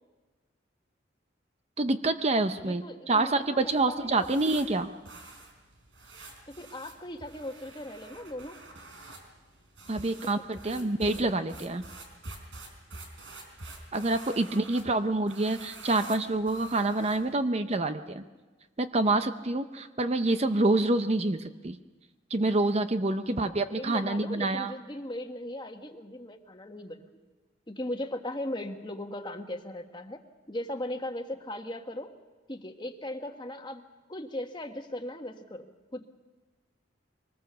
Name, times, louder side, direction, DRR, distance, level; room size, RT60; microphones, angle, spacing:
voice 1, 1.8-4.9 9.9-11.8 13.9-18.2 18.8-21.8 22.3-24.7, right 2 dB, 35° right, 9 dB, 0.7 m, -27 dB
voice 2, 2.6-4.3 6.5-8.6 10.1-10.4 10.7-11.2 22.9-23.0 23.4-27.0 27.7-30.2 30.5-32.1 32.5-33.8 34.1-36.1, left 1 dB, 25° left, 5 dB, 1.4 m, -38 dB
sound 1, 3.6-17.4, right 2 dB, 85° right, 4.1 m, -48 dB
24.0 x 19.5 x 6.9 m, 1.3 s
head